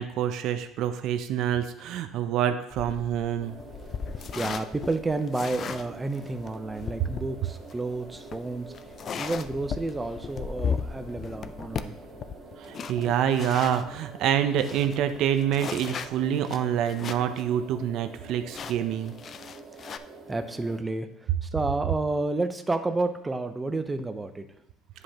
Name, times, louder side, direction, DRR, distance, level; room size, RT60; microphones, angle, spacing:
voice 1, 0.0-3.6 12.6-19.1, right 9 dB, 65° right, 9 dB, 0.5 m, -27 dB
sound 1, 2.7-13.9 14.3-14.4 14.6-17.4 17.8-17.9 18.5-20.0, left 6 dB, 40° left, 0.3 m, -36 dB
sound 2, 3.4-20.8, right 3 dB, 40° right, 1.4 m, -47 dB
voice 2, 4.4-8.7 9.2-12.0 20.3-21.1 21.4-24.5, right 2 dB, 15° right, 7 dB, 0.5 m, -30 dB
9.4 x 5.2 x 2.9 m, 0.83 s
cardioid pair, 120°, 0 cm